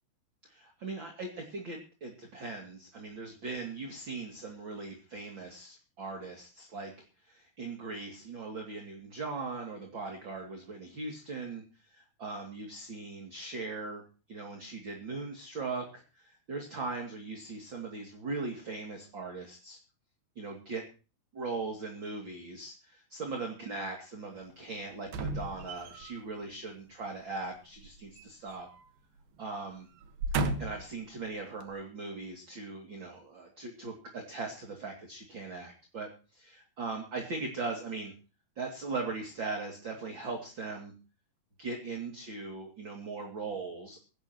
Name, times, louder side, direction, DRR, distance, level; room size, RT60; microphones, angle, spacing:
voice 1, 0.4-6.9 7.2-11.6 11.9-19.8 20.4-20.8 21.3-28.7 29.4-29.9 30.6-38.1 38.6-40.9 41.6-44.0, right 3 dB, 35° right, 2 dB, 2.8 m, -39 dB
sound 1, 25.0-26.2 27.8-28.9 29.2-29.4 30.0-30.9 31.6-31.7, right 2 dB, 70° right, 3.2 m, -35 dB
23.0 x 11.5 x 3.1 m, 0.34 s
omnidirectional pair, 4.7 m